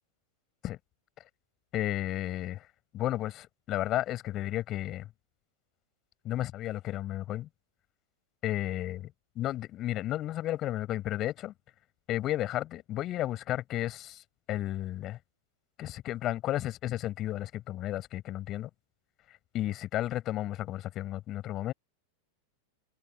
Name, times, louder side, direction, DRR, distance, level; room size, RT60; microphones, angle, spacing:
voice 1, 1.7-2.6 2.9-5.1 6.2-7.5 8.4-9.0 9.3-11.5 12.1-14.2 14.5-15.2 15.8-18.7 19.5-21.7, left 14 dB, 35° left, 4.9 m, -33 dB
figure-of-eight pair, 90°, 0 cm